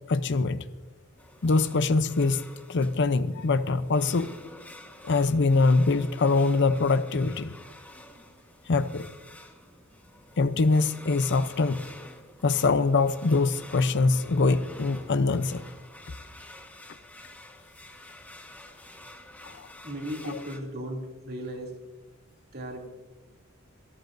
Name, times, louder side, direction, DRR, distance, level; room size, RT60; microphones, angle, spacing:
voice 1, 0.1-0.6 1.4-4.3 5.0-7.5 8.7-9.1 10.4-11.8 12.4-15.6 19.6-19.7 20.3-20.4, left 3 dB, 55° left, 13 dB, 0.6 m, -23 dB
sound 1, 1.2-20.6, left 1 dB, 5° left, 1.3 m, -49 dB
voice 2, 19.8-21.7 22.5-22.9, equal, 45° right, 1 dB, 2.8 m, -36 dB
27.0 x 13.5 x 2.6 m, 1.1 s
head